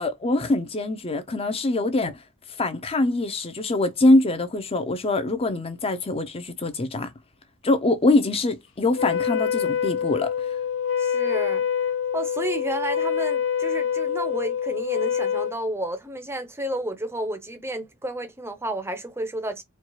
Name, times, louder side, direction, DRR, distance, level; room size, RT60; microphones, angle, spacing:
voice 1, 0.0-2.2 2.6-7.1 7.6-10.3, left 2 dB, 25° left, 0.6 m, -23 dB
Wind instrument woodwind instrument, 8.9-15.6, left 8 dB, 55° left, 0.8 m, -26 dB
voice 2, 11.0-11.6 12.1-19.6, right 1 dB, 10° right, 0.6 m, -31 dB
4.4 x 2.3 x 2.9 m
head